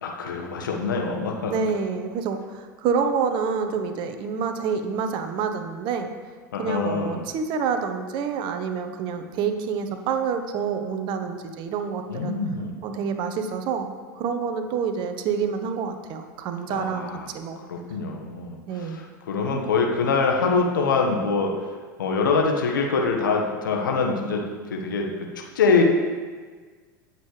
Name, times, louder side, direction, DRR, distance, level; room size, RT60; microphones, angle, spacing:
voice 1, 0.0-1.5 6.5-7.2 12.1-12.8 16.7-17.3 17.7-21.5 22.0-24.4 24.7-25.1 25.5-25.8, left 4 dB, 75° left, 1 dB, 1.6 m, -24 dB
voice 2, 1.5-6.1 6.6-12.4 12.8-13.9 14.1-17.8 18.7-19.0, right 6 dB, 45° right, 7 dB, 1.3 m, -27 dB
18.0 x 7.8 x 3.4 m, 1.5 s
figure-of-eight pair, 85°, 11 cm